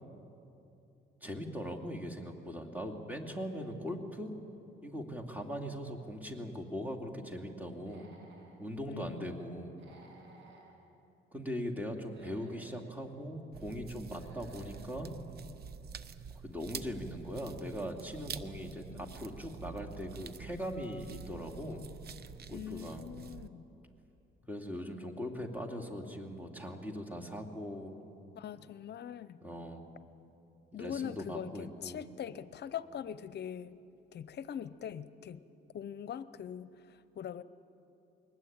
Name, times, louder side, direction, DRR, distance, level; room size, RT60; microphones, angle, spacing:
voice 1, 1.2-4.3 4.8-8.1 8.6-9.8 11.3-15.1 16.4-21.8 22.5-23.1 24.5-28.0 29.4-29.9 30.8-32.1, equal, 10° right, 2 dB, 2.7 m, -40 dB
Human voice / Animal, 7.7-8.6 9.7-10.7 12.0-12.8 13.9-14.8, right 2 dB, 70° right, 6.7 m, -57 dB
voice 2, 8.9-9.3 22.5-23.6 28.3-29.4 30.7-33.8 34.1-35.4 35.7-37.4, left 9 dB, 60° left, 15 dB, 0.7 m, -42 dB
sound 1, 13.5-23.5, right 7 dB, 50° right, 0.9 m, -47 dB
22.0 x 19.5 x 8.9 m, 2.8 s
cardioid pair, 90°, 20 cm